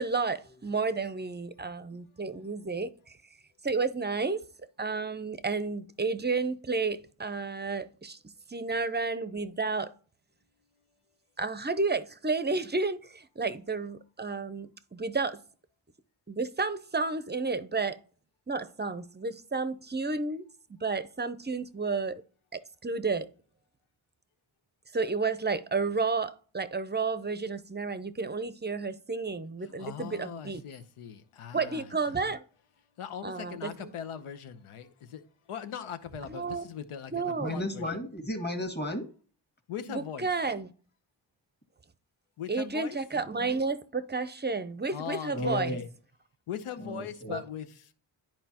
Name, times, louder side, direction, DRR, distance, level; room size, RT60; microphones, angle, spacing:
voice 1, 0.0-3.2 3.6-4.4 4.8-8.2 8.5-9.9 11.4-15.4 16.3-18.0 18.5-20.4 20.7-22.2 22.8-23.3 24.9-30.6 31.5-32.4 33.2-33.7 36.3-36.6 37.1-37.6 39.9-40.7 42.5-45.8 47.3-47.4, right 4 dB, 20° right, 0.6 m, -31 dB
voice 2, 29.6-32.1 33.0-38.0 39.7-40.3 42.4-43.0 44.9-45.9 46.5-47.9, left 8 dB, 85° left, 0.9 m, -40 dB
voice 3, 37.4-39.1 45.3-45.8 46.8-47.3, left 1 dB, 20° left, 1.7 m, -33 dB
10.0 x 4.5 x 2.9 m
cardioid pair, 55°, 50 cm